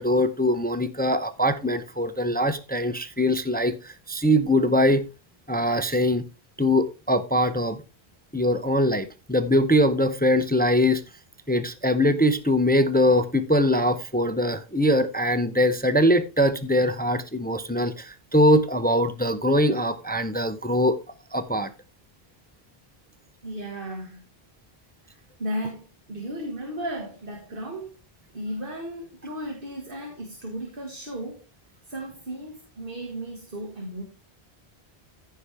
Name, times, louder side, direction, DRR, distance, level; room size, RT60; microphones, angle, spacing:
voice 1, 0.0-5.0 5.5-6.2 6.6-7.8 8.3-11.0 11.5-21.0 21.3-21.7, equal, 10° left, 10 dB, 0.6 m, -22 dB
voice 2, 23.4-24.2 25.0-28.0 28.3-31.4 31.9-34.0, right 1 dB, 60° right, 1 dB, 2.1 m, -35 dB
15.0 x 5.7 x 3.4 m, 0.30 s
omnidirectional pair, 1.0 m